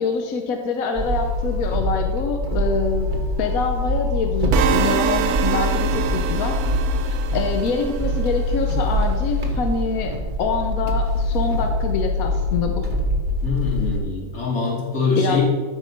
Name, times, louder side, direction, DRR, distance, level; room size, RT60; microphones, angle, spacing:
voice 1, 0.0-3.1 3.4-6.6 7.1-12.9 15.2-15.4, left 4 dB, 70° left, 4 dB, 1.2 m, -25 dB
sound 1, 1.0-14.0, left 1 dB, 35° right, 1.4 m, -24 dB
sound 2, 4.5-8.6, right 9 dB, 85° right, 1.1 m, -25 dB
voice 2, 13.4-15.4, left 4 dB, 50° left, -4 dB, 2.8 m, -23 dB
13.5 x 5.3 x 5.2 m, 1.5 s
omnidirectional pair, 1.6 m